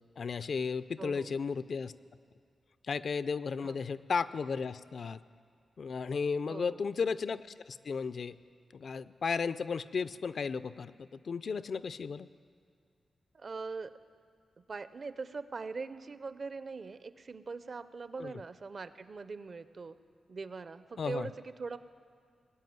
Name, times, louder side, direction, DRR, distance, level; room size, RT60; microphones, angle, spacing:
voice 1, 0.2-1.9 2.9-5.2 5.8-8.4 8.7-12.3 18.2-18.3 21.0-21.3, left 5 dB, 55° left, 14 dB, 0.4 m, -34 dB
voice 2, 1.0-1.4 3.6-3.8 6.5-6.8 13.3-13.9 14.7-20.0 20.3-21.8, right 4 dB, 40° right, 13 dB, 0.5 m, -41 dB
20.0 x 7.6 x 9.4 m, 2.2 s
wide cardioid pair, 145°, 0 cm